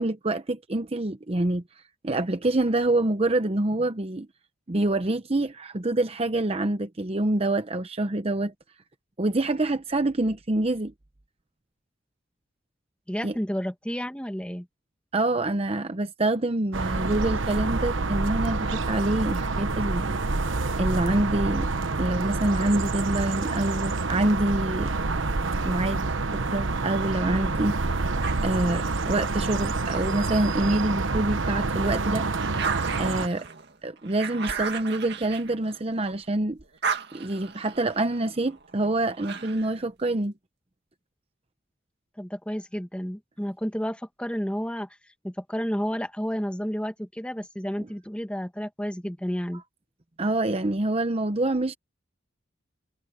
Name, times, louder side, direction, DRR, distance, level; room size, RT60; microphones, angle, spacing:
voice 1, 0.0-1.6 2.0-4.3 4.7-8.5 9.2-10.9 13.2-13.3 15.1-20.2 20.8-21.7 22.0-24.9 25.6-26.1 26.3-28.0 28.4-32.3 33.0-33.5 33.8-36.6 37.1-40.3 50.2-51.7, right 2 dB, 30° right, 0.8 m, -26 dB
voice 2, 13.1-14.7 42.2-44.9 45.2-49.6, equal, 5° left, 1.9 m, -31 dB
sound 1, 16.7-33.3, right 3 dB, 80° right, 1.1 m, -27 dB
sound 2, 28.2-30.9 31.4-36.2 36.5-39.8, right 5 dB, 60° right, 2.1 m, -36 dB
head